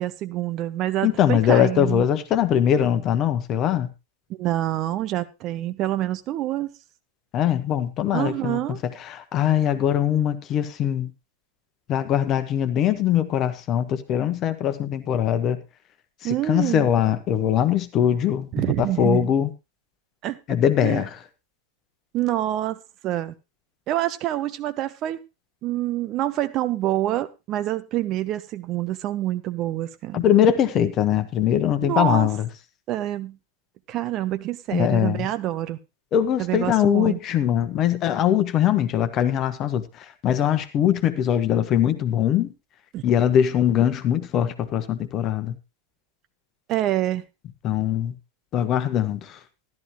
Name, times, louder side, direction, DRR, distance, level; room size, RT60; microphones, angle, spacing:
voice 1, 0.0-2.0 4.3-6.7 8.1-8.8 16.2-16.9 18.5-19.3 20.2-20.4 20.8-21.0 22.1-22.8 23.0-23.3 23.9-25.2 25.6-30.3 31.8-32.3 32.9-33.4 33.9-35.8 36.4-37.2 42.9-43.0 46.7-47.2, right 14 dB, 35° right, 0.9 m, -26 dB
voice 2, 1.0-3.9 7.3-8.6 9.0-11.1 11.9-15.6 16.2-18.6 19.0-19.5 20.5-21.1 30.1-32.5 34.7-35.3 36.1-39.8 40.2-42.5 43.0-45.5 47.6-48.1 48.5-49.4, left 10 dB, 35° left, 1.2 m, -21 dB
13.5 x 12.0 x 3.1 m
figure-of-eight pair, 90°, 0 cm